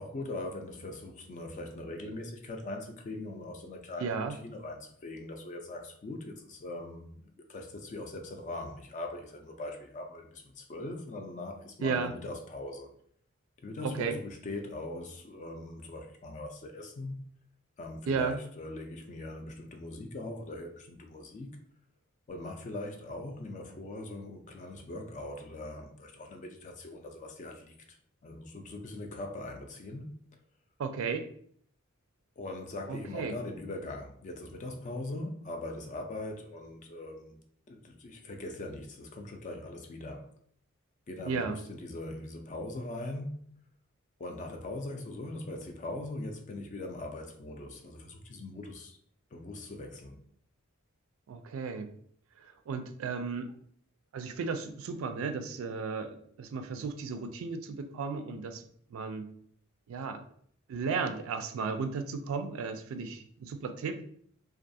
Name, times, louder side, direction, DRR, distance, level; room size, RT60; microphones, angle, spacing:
voice 1, 0.0-12.9 13.6-17.2 17.8-21.6 22.3-28.0 28.2-30.1 32.4-37.4 37.7-40.3 41.1-43.5 44.2-49.0 49.3-50.2, left 2 dB, 35° left, 0.4 m, -41 dB
voice 2, 4.0-4.4 11.8-12.1 13.8-14.2 18.1-18.4 30.8-31.3 32.9-33.4 41.2-41.6 51.3-51.9 52.4-53.5 54.1-56.1 56.4-58.6 58.9-59.3 59.9-60.2 60.7-64.0, right 5 dB, 75° right, 0.3 m, -34 dB
2.4 x 2.3 x 2.6 m
head